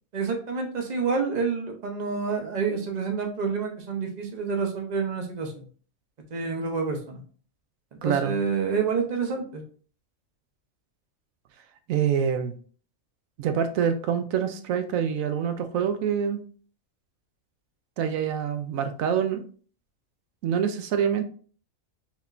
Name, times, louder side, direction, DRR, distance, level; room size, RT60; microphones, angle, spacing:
voice 1, 0.1-5.6 6.3-7.2 7.9-9.6, right 5 dB, 35° right, 3 dB, 0.8 m, -28 dB
voice 2, 8.0-8.4 11.9-12.5 13.4-16.4 18.0-19.4 20.4-21.2, right 8 dB, 75° right, 9 dB, 1.0 m, -26 dB
4.8 x 3.5 x 2.5 m, 0.43 s
omnidirectional pair, 1.4 m